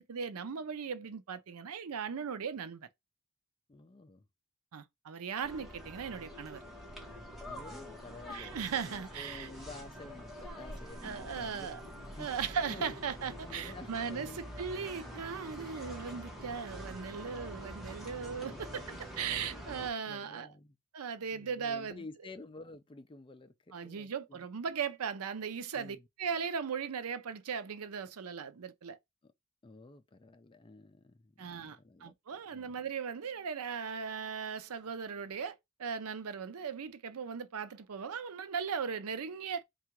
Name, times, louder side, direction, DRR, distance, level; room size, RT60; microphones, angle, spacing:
voice 1, 0.0-2.9 4.7-6.6 8.3-9.5 11.0-11.8 12.2-18.8 19.2-20.5 20.9-22.0 23.7-29.0 31.4-39.6, right 6 dB, 80° right, 0.5 m, -38 dB
voice 2, 3.7-4.2 7.5-8.6 8.9-11.7 12.2-12.4 12.7-13.0 13.4-14.4 18.4-18.6 18.9-19.5 20.1-20.8 21.3-23.5 23.8-24.5 25.7-26.1 29.2-29.3 29.6-32.1 32.5-32.7, left 3 dB, 20° left, 0.4 m, -51 dB
sound 1, 5.4-19.9, equal, ahead, 1.1 m, -46 dB
3.7 x 2.4 x 4.4 m
head